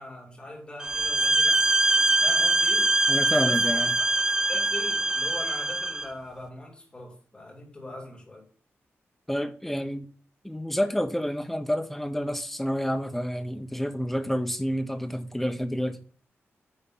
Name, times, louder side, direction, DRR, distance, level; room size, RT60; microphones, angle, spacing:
voice 1, 0.0-1.6 2.2-2.9 3.3-4.0 4.5-8.5, left 1 dB, 20° left, 2.7 m, -41 dB
sound 1, 0.8-6.1, right 2 dB, 15° right, 0.3 m, -23 dB
voice 2, 3.1-3.9 9.3-10.1 10.4-16.0, equal, 5° left, 0.8 m, -29 dB
9.7 x 3.7 x 5.3 m
wide cardioid pair, 155°, 5 cm